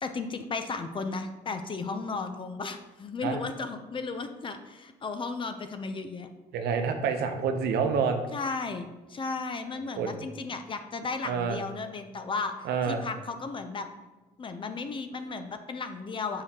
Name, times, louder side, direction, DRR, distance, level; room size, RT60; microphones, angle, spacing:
voice 1, 0.0-6.3 8.3-13.9 14.4-16.4, left 4 dB, 30° left, 8 dB, 0.5 m, -35 dB
voice 2, 6.5-8.2 10.0-10.2 11.2-11.6 12.6-13.1, right 6 dB, 75° right, 6 dB, 0.7 m, -28 dB
7.0 x 4.8 x 2.9 m, 1.2 s
cardioid pair, 110°, 17 cm